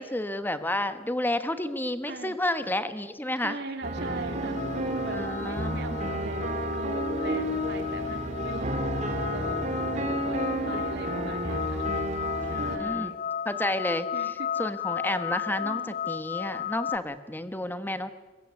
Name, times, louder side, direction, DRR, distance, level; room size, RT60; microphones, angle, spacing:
voice 1, 0.0-3.6 5.1-5.9 12.3-13.1 13.4-14.1 14.6-18.1, left 1 dB, 10° left, 11 dB, 1.2 m, -31 dB
voice 2, 3.4-8.8 9.3-9.6 9.9-11.9 12.5-13.2 14.1-14.5 15.6-16.0, right 2 dB, 65° right, 6 dB, 2.8 m, -39 dB
sound 1, 3.8-12.8, right 1 dB, 40° right, 3.1 m, -31 dB
sound 2, 4.5-17.0, left 8 dB, 50° left, 0.7 m, -34 dB
22.5 x 20.0 x 8.3 m, 1.3 s
head